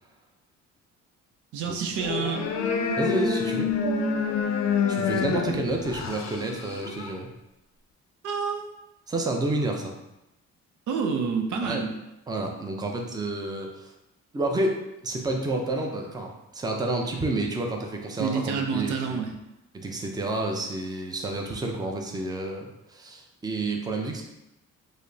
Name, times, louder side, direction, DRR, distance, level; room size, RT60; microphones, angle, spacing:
voice 1, 1.5-2.5 8.2-8.7 10.9-11.9 18.2-19.3, right 6 dB, 75° right, 3 dB, 0.6 m, -28 dB
sound 1, 1.9-7.2, left 5 dB, 60° left, 0.5 m, -27 dB
voice 2, 3.0-3.7 4.9-7.3 9.1-9.9 11.6-11.8 12.3-13.9 14.3-19.2 19.7-24.2, right 2 dB, 15° right, 1 dB, 0.5 m, -30 dB
4.8 x 2.0 x 2.7 m, 0.93 s
cardioid pair, 90°, 30 cm